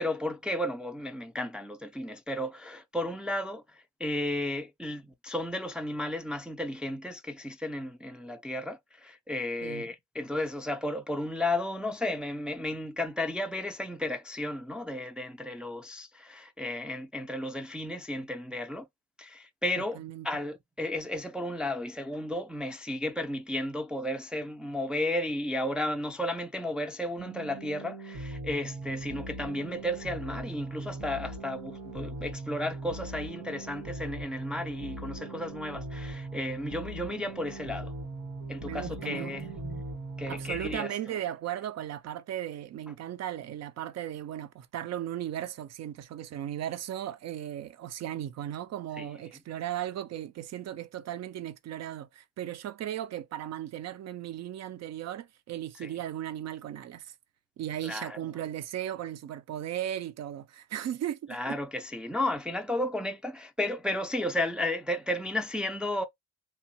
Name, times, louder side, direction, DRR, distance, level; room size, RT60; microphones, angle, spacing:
voice 1, 0.0-18.9 19.2-37.9 38.5-39.8 40.2-41.2 49.0-49.1 55.8-56.0 57.8-58.2 61.3-66.1, left 1 dB, 5° right, 0.4 m, -33 dB
voice 2, 20.0-20.3 38.6-39.5 40.3-57.1 57.6-61.6, right 11 dB, 60° right, 0.5 m, -36 dB
sound 1, 27.2-40.8, right 2 dB, 80° right, 1.9 m, -40 dB
2.9 x 2.0 x 2.8 m
cardioid pair, 90°, 30 cm